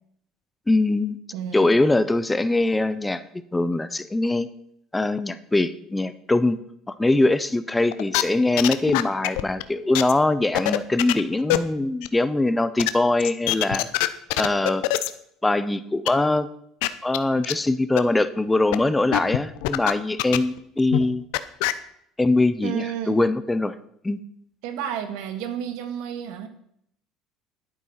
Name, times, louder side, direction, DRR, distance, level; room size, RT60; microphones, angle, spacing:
voice 1, 0.7-1.2 1.5-3.2 3.5-4.5 4.9-6.6 6.9-13.9 14.4-14.8 15.4-16.5 17.0-21.2 22.2-23.7 24.0-24.2, left 2 dB, 10° left, 14 dB, 0.5 m, -22 dB
voice 2, 1.3-1.7 22.6-23.2 24.6-26.5, right 9 dB, 80° right, 9 dB, 1.7 m, -31 dB
sound 1, 7.9-8.2 8.6-9.6 9.9-10.1 10.4-11.2 11.5-11.6 12.0-12.1 12.8-12.9 13.2-15.1 16.1-16.2 16.4-16.5 16.8-16.9 17.1-17.2 17.4-17.5 18.0-18.1 18.7-18.8 19.1-19.9 20.2-20.6 20.9-21.1 21.3-21.7, left 19 dB, 85° left, 0.7 m, -23 dB
11.5 x 8.6 x 5.7 m, 0.71 s
cardioid pair, 150°, 0 cm